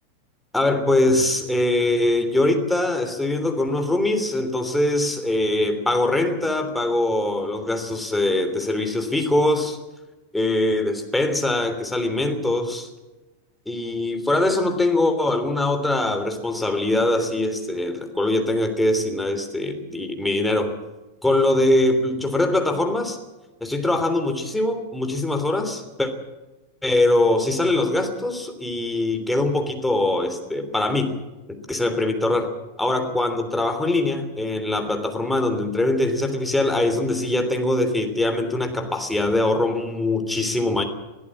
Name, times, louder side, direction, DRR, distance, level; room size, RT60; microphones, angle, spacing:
voice 1, 0.5-9.8 10.3-12.9 13.7-20.7 21.2-23.2 23.6-26.1 26.8-31.2 31.5-32.5 32.8-40.8, left 2 dB, 5° left, 6 dB, 3.3 m, -22 dB
22.0 x 14.5 x 8.6 m, 1.1 s
figure-of-eight pair, 90°, 0 cm